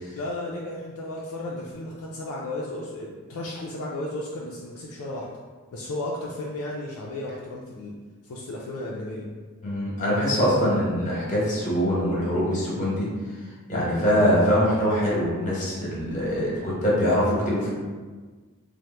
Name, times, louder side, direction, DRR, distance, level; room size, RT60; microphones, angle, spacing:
voice 1, 0.1-5.3 5.7-8.0 8.2-9.3, left 1 dB, 65° left, -3 dB, 0.4 m, -34 dB
voice 2, 9.6-13.1 13.7-17.7, equal, 35° left, -6 dB, 1.0 m, -23 dB
2.9 x 2.0 x 3.2 m, 1.4 s
head